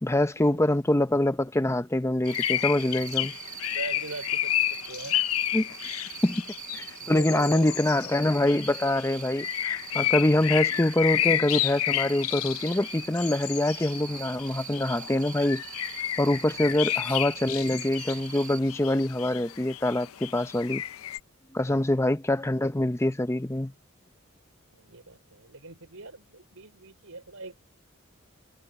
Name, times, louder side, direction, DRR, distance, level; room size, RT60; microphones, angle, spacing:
voice 1, 0.0-3.3 5.5-5.7 6.2-6.4 6.7-15.6 16.2-20.8 21.5-23.7, left 1 dB, 15° left, 0.7 m, -25 dB
Cricket, 2.2-18.6, right 8 dB, 40° right, 6.4 m, -43 dB
sound 1, 2.3-21.2, left 12 dB, 80° left, 0.6 m, -31 dB
voice 2, 3.7-4.5 4.9-5.2 7.0-7.8 16.5-16.9 21.6-21.9 24.7-27.6, right 2 dB, 80° right, 5.2 m, -42 dB
head